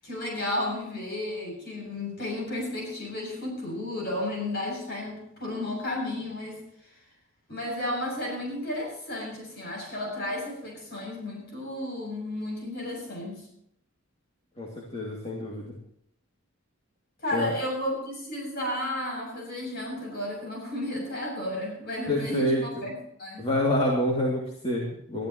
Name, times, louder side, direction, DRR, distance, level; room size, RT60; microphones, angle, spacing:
voice 1, 0.0-6.9 7.5-13.5 17.2-22.9 23.2-23.5, left 1 dB, 45° left, 0 dB, 7.5 m, -33 dB
voice 2, 14.6-15.6 17.3-17.5 22.1-22.6 23.4-25.3, left 1 dB, 30° left, -2 dB, 2.5 m, -27 dB
21.5 x 14.0 x 3.1 m, 0.75 s
head